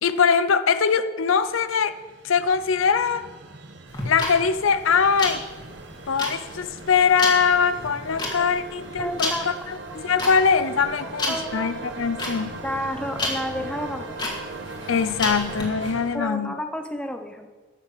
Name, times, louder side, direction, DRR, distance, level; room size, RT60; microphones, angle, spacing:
voice 1, 0.0-2.0 2.2-3.3 4.0-5.4 6.1-12.6 14.9-16.5, left 6 dB, 80° left, 13 dB, 0.6 m, -22 dB
sound 1, 1.5-16.2, right 3 dB, 60° right, 1.1 m, -39 dB
sound 2, 3.9-15.6, left 2 dB, 20° left, 2.3 m, -31 dB
voice 2, 9.0-9.5 9.9-10.0 11.0-11.7 12.6-14.2 16.1-17.5, equal, 5° left, 6 dB, 0.8 m, -31 dB
13.5 x 6.7 x 7.3 m, 1.3 s
head